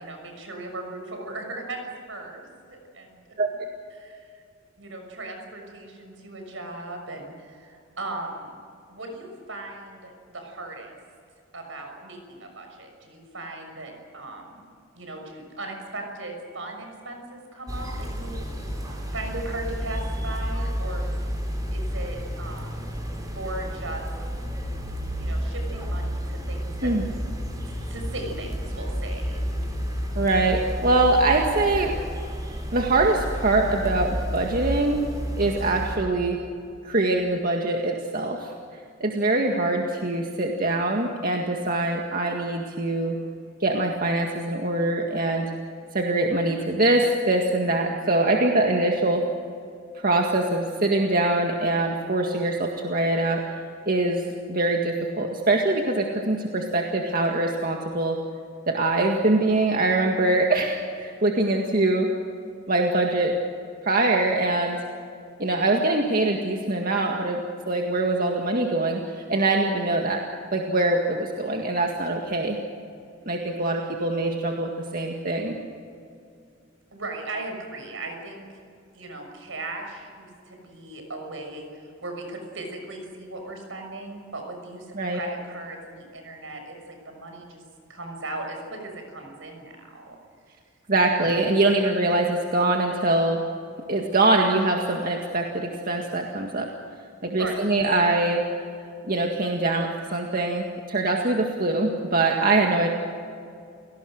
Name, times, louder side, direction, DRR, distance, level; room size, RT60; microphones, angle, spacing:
voice 1, 0.0-2.4 2.7-3.2 3.9-4.4 4.8-8.5 8.9-10.9 11.5-14.7 14.9-18.4 19.1-21.1 21.7-22.9 23.3-24.0 25.1-26.9 27.6-29.4 76.9-78.5 78.9-87.6 87.9-90.2 97.2-97.8, right 2 dB, 75° right, 3 dB, 6.4 m, -37 dB
sound 1, 17.7-36.0, equal, 20° right, 4.4 m, -31 dB
voice 2, 30.2-31.9 32.7-35.0 35.4-36.4 36.8-38.5 39.0-43.2 43.6-45.5 45.9-49.2 50.0-53.4 53.9-58.2 58.7-62.1 62.7-63.3 63.8-64.8 65.4-67.4 67.7-70.2 70.5-72.6 73.3-75.6 85.0-85.2 90.9-93.4 93.9-96.7 97.2-98.4 99.1-102.9, right 2 dB, 45° right, 1 dB, 1.9 m, -23 dB
30.0 x 18.5 x 6.5 m, 2.4 s
head